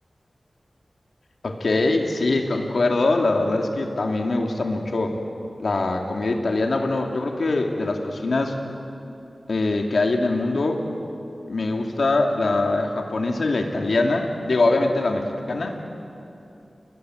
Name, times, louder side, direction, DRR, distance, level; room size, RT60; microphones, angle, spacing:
voice 1, 1.4-5.1 5.6-8.6 9.5-10.8 11.5-15.9, left 2 dB, 80° left, 2 dB, 2.6 m, -23 dB
29.5 x 21.0 x 7.9 m, 2.7 s
wide cardioid pair, 75°, 0 cm